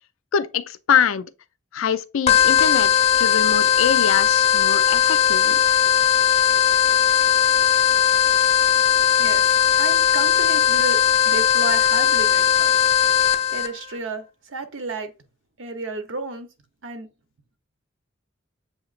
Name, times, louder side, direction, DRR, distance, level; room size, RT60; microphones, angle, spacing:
voice 1, 0.3-1.3 1.7-5.6, left 7 dB, 90° left, 0.4 m, -24 dB
sound 1, 2.3-13.7, left 9 dB, 30° left, 0.4 m, -18 dB
voice 2, 9.2-11.0 11.3-12.7 13.5-15.1 15.6-16.5 16.8-17.1, right 3 dB, 75° right, 0.8 m, -32 dB
7.1 x 2.9 x 2.4 m
head